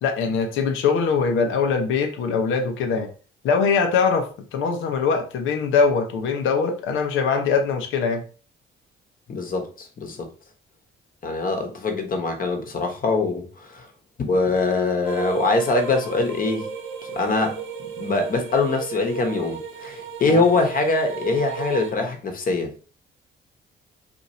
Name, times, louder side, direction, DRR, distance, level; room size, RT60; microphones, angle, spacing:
voice 1, 0.0-3.1 3.4-8.2 20.3-20.4, left 5 dB, 90° left, 0.8 m, -22 dB
voice 2, 9.3-10.3 11.2-13.9 14.3-16.7 17.1-17.6 18.0-22.8, left 3 dB, 45° left, 1.0 m, -23 dB
sound 1, 15.0-21.9, right 6 dB, 80° right, 0.8 m, -33 dB
2.6 x 2.6 x 4.2 m
cardioid pair, 90°, 20 cm